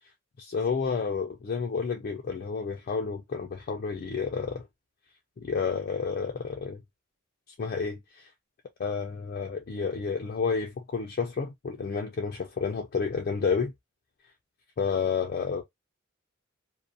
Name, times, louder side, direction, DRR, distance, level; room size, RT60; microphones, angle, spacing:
voice 1, 0.4-4.7 5.4-6.8 7.6-8.3 8.8-13.7 14.8-15.6, left 5 dB, 45° left, 0.4 m, -30 dB
2.4 x 2.0 x 2.5 m
head